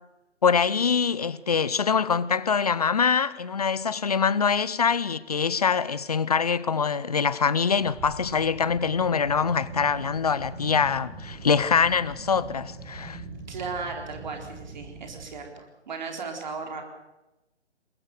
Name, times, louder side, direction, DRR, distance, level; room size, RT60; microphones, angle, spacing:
voice 1, 0.4-13.2, left 6 dB, 35° left, 0.7 m, -24 dB
sound 1, 7.8-15.3, right 3 dB, 20° right, 6.4 m, -42 dB
voice 2, 13.5-16.8, right 4 dB, 40° right, 4.0 m, -36 dB
22.5 x 21.5 x 6.7 m
figure-of-eight pair, 145°, 35 cm